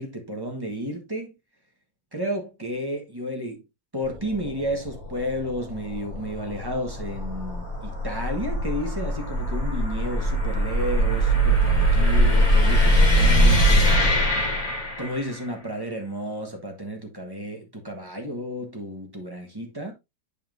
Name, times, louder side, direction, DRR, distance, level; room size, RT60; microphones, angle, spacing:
voice 1, 0.0-1.3 2.1-3.6 3.9-13.9 15.0-19.9, equal, 15° right, 1.2 m, -32 dB
sound 1, 4.1-15.4, equal, 50° left, 2.9 m, -22 dB
8.4 x 5.5 x 2.6 m
omnidirectional pair, 1.8 m